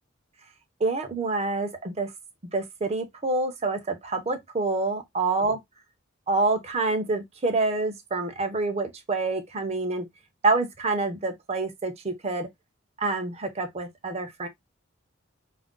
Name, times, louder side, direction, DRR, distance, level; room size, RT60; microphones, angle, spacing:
voice 1, 0.8-2.1 2.5-5.6 6.3-10.1 10.4-12.5 13.0-14.5, right 3 dB, 30° right, 0.6 m, -27 dB
2.5 x 2.1 x 3.5 m
head